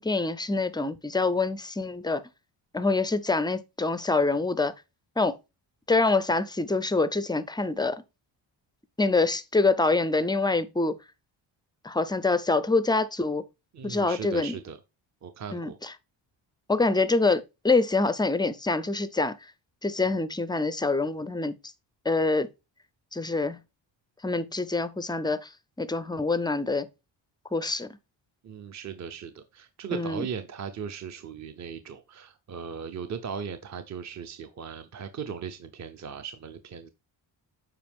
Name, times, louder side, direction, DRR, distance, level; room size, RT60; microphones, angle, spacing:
voice 1, 0.0-2.2 2.7-4.7 5.2-5.4 5.9-8.0 9.0-10.9 11.8-13.4 13.8-14.5 15.5-15.9 16.7-19.3 19.8-21.5 22.1-22.5 23.1-23.6 24.2-25.4 25.8-26.9 27.5-27.9 29.9-30.3, left 3 dB, 10° left, 0.3 m, -25 dB
voice 2, 13.7-14.8 15.2-15.8 28.4-36.9, right 7 dB, 40° right, 0.6 m, -38 dB
7.7 x 4.9 x 3.5 m
wide cardioid pair, 150°, 46 cm